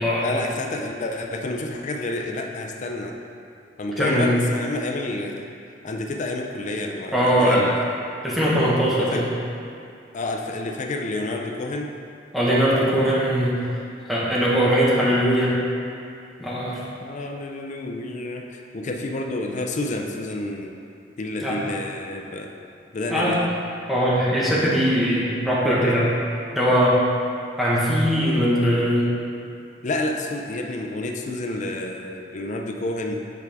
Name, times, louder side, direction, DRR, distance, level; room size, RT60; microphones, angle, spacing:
voice 1, 0.2-3.2 3.8-5.5 5.8-8.0 9.0-9.3 10.1-12.0 17.0-20.8 21.2-22.5 22.9-23.5 29.8-33.2, left 2 dB, 40° left, 2 dB, 0.5 m, -29 dB
voice 2, 4.0-4.3 7.1-7.7 8.2-9.3 12.3-13.6 14.1-15.5 16.4-16.8 21.4-21.6 23.1-23.4 23.9-26.2 26.5-27.0 27.6-29.1, equal, ahead, -8 dB, 1.3 m, -20 dB
8.1 x 4.6 x 3.5 m, 2.5 s
head